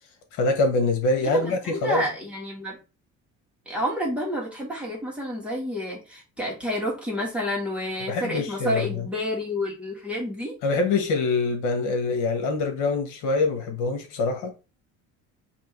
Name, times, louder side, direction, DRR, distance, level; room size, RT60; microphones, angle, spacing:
voice 1, 0.4-2.0 8.1-9.0 10.6-14.5, left 3 dB, 80° left, 1.3 m, -24 dB
voice 2, 1.2-2.8 3.7-10.6, equal, 5° right, 1.7 m, -29 dB
3.6 x 2.9 x 4.5 m
cardioid pair, 150°, 29 cm